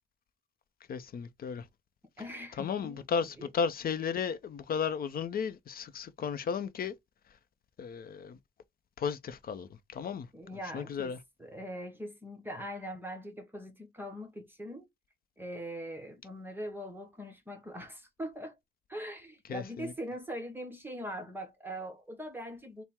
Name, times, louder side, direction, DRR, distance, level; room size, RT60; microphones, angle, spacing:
voice 1, 0.9-1.6 2.6-6.9 7.8-8.4 9.0-10.3 10.7-11.2 19.5-19.9, left 6 dB, 50° left, 0.6 m, -34 dB
voice 2, 2.2-3.0 3.4-3.5 10.3-11.1 11.4-14.9 15.4-18.6 18.9-22.8, equal, 10° right, 0.9 m, -41 dB
4.2 x 2.1 x 3.6 m
cardioid pair, 90°, 20 cm